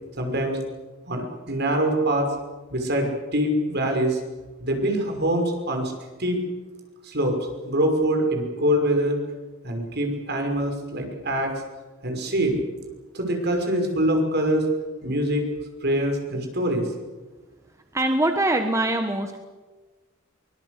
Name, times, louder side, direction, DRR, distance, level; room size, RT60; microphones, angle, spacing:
voice 1, 0.2-0.6 1.1-2.3 2.7-4.2 4.6-5.9 6.2-6.4 7.0-7.4 7.6-9.2 9.6-11.5 12.0-12.6 13.1-14.7 15.0-15.5 15.8-16.9, right 1 dB, 50° right, 3 dB, 5.8 m, -24 dB
voice 2, 17.9-19.4, right 1 dB, 15° right, 6 dB, 1.3 m, -23 dB
24.0 x 21.0 x 8.2 m, 1.2 s
head